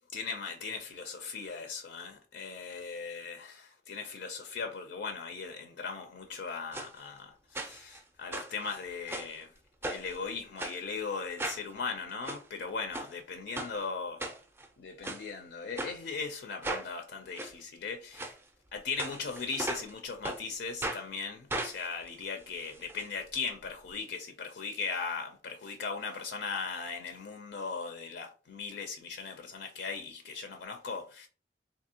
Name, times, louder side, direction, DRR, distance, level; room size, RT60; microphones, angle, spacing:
voice 1, 0.1-9.5 9.9-14.3 14.8-18.3 18.7-31.3, left 5 dB, 65° left, 0.4 m, -38 dB
sound 1, 6.7-6.9 7.5-8.0 8.3-9.4 9.8-10.1 10.6-10.8 11.4-11.6 12.1-12.4 12.9-13.1 13.5-13.7 14.2-14.7 15.0-15.2 15.8-15.9 16.6-16.9 17.4-17.5 18.1-18.3 19.0-19.9 20.2-20.4 20.8-21.0 21.5-23.0 23.3-23.4 23.6-23.7, right 2 dB, 15° right, 0.4 m, -37 dB
3.4 x 2.7 x 2.7 m
head